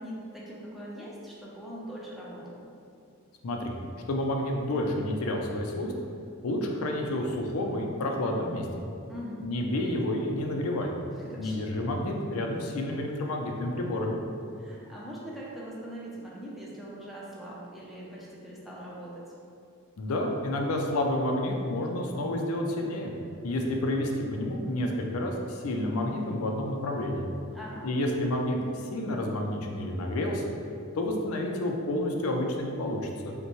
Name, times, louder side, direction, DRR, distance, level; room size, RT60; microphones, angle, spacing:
voice 1, 0.0-2.6 9.1-9.5 11.2-11.6 14.6-19.3 27.5-27.9, equal, ahead, -6 dB, 0.6 m, -42 dB
voice 2, 4.1-5.9 6.4-8.7 9.4-10.9 11.4-14.2 20.0-23.1 23.4-27.3 27.8-30.4 31.0-33.3, left 1 dB, 80° left, 1 dB, 0.5 m, -29 dB
5.3 x 2.2 x 3.0 m, 2.5 s
head